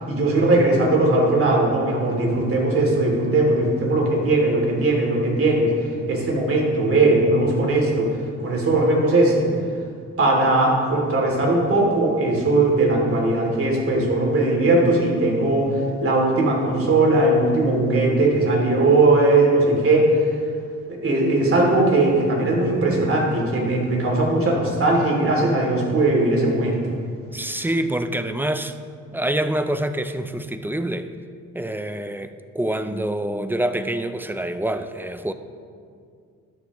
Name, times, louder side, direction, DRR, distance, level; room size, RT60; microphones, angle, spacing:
voice 1, 0.1-5.7 6.1-8.1 8.4-9.5 10.2-15.7 16.0-20.1 20.9-26.8, right 2 dB, 45° right, -1 dB, 2.8 m, -19 dB
voice 2, 27.3-28.7 29.1-31.1 31.5-35.3, right 1 dB, 5° right, 9 dB, 0.5 m, -26 dB
13.0 x 9.4 x 3.1 m, 2.3 s
cardioid pair, 90°, 30 cm